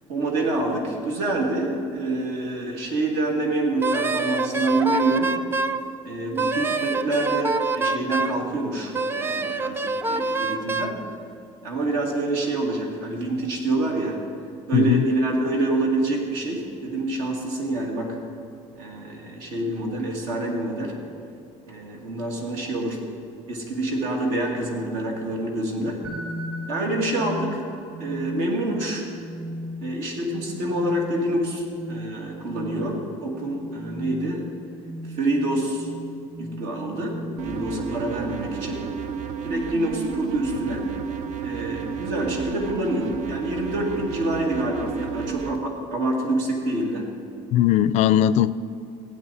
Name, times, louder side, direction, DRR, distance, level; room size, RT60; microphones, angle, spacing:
voice 1, 0.1-5.4 6.0-11.0 11.6-14.2 14.7-18.2 18.7-21.0 21.7-23.0 23.5-26.0 26.7-27.6 28.0-29.1 29.8-34.5 35.1-35.9 36.4-38.9 39.4-40.9 41.4-47.1, right 2 dB, 80° right, 0 dB, 2.4 m, -27 dB
Wind instrument woodwind instrument, 3.8-5.8 6.4-8.4 8.9-11.0, right 3 dB, 15° right, 0.4 m, -25 dB
voice 2, 14.7-15.0 47.5-48.5, left 11 dB, 55° left, 16 dB, 0.4 m, -19 dB
sound 1, 26.0-37.8, equal, 40° right, 2.3 m, -37 dB
sound 2, 37.4-45.6, right 7 dB, 60° right, 0.6 m, -32 dB
16.5 x 8.7 x 4.2 m, 2.6 s
cardioid pair, 125°, 14 cm